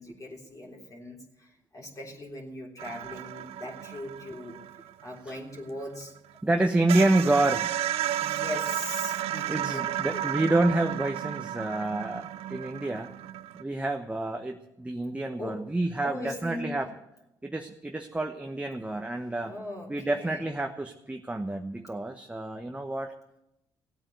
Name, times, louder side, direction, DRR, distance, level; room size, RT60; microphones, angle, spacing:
voice 1, 0.0-4.6 5.0-6.2 6.5-7.1 8.2-10.4 15.4-15.6 16.0-16.9 19.4-20.5, left 1 dB, 30° left, -2 dB, 3.6 m, -40 dB
sound 1, 2.8-6.2 6.5-6.6 6.9-13.6, right 12 dB, 70° right, 0.5 m, -33 dB
voice 2, 6.4-7.7 9.1-13.1 13.5-16.9 17.4-19.5 19.9-23.1, right 2 dB, 15° right, 4 dB, 1.2 m, -28 dB
16.0 x 9.0 x 8.0 m, 0.85 s
supercardioid pair, 55°, 10 cm